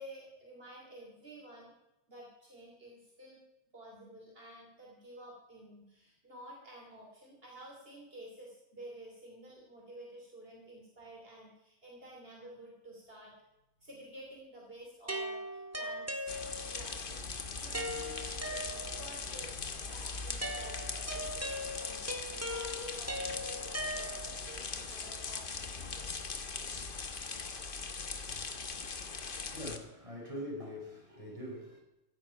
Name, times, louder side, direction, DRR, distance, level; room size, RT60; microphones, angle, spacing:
voice 1, 0.0-1.7 2.1-3.4 3.7-13.3 13.8-16.3 16.6-17.3 17.5-26.2, right 1 dB, 60° right, -3 dB, 3.2 m, -51 dB
sound 1, 15.1-16.9 17.7-19.2 20.4-24.5, equal, 15° right, 1.9 m, -39 dB
sound 2, 16.3-29.8, left 4 dB, 55° left, 1.4 m, -40 dB
voice 2, 29.4-31.8, equal, 30° right, -2 dB, 5.1 m, -43 dB
15.5 x 10.5 x 5.7 m, 0.94 s
omnidirectional pair, 1.1 m